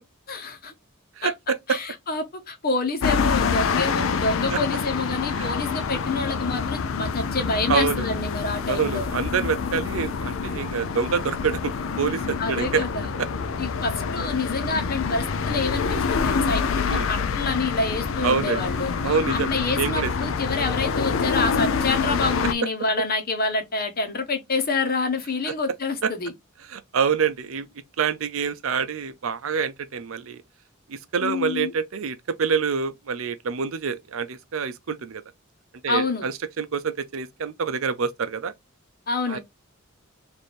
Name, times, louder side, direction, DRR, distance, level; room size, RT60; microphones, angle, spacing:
voice 1, 0.3-0.7 1.2-1.3 1.7-9.1 12.4-13.1 13.6-26.3 31.2-31.7 35.9-36.3 39.1-39.4, left 3 dB, 45° left, 1.0 m, -27 dB
voice 2, 1.2-1.8 4.5-4.6 5.4-5.5 7.7-8.1 8.7-12.8 13.2-13.3 15.9-16.1 16.9-17.1 18.2-18.6 19.0-19.5 19.8-20.1 25.5-25.6 26.0-26.1 26.7-27.7 28.0-30.4 30.9-35.2 35.8-38.5 39.3-39.4, right 6 dB, 75° right, 0.6 m, -26 dB
sound 1, 3.0-22.5, left 5 dB, 65° left, 0.4 m, -26 dB
3.3 x 2.6 x 4.2 m
head